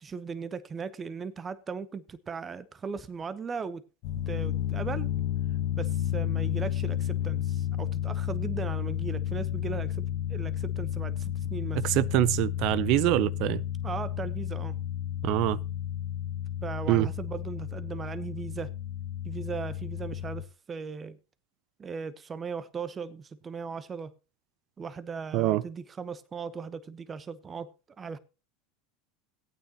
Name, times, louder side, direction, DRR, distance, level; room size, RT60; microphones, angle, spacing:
voice 1, 0.0-3.8 4.3-5.1 5.7-10.0 10.3-11.8 13.8-14.8 16.6-18.7 19.2-21.2 21.8-24.1 24.8-27.7 28.0-28.2, right 5 dB, 25° right, 0.9 m, -38 dB
sound 1, 4.0-20.4, left 11 dB, 65° left, 1.2 m, -32 dB
voice 2, 11.8-13.6 15.2-15.6 16.9-17.1 25.3-25.6, right 16 dB, 60° right, 0.5 m, -24 dB
16.5 x 9.0 x 2.9 m
hypercardioid pair, 85°, 0 cm